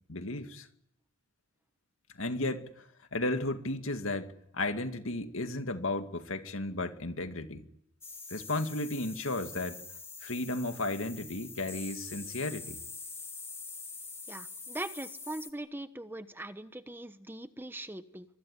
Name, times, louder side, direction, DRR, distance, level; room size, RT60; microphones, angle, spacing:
voice 1, 0.1-0.7 2.2-2.8 3.1-7.7 8.3-9.8 10.2-12.8, left 2 dB, 75° left, 2.2 m, -34 dB
sound 1, 8.0-15.5, left 4 dB, 10° left, 2.1 m, -45 dB
voice 2, 14.3-18.3, right 1 dB, 10° right, 1.0 m, -41 dB
25.5 x 23.5 x 9.9 m
head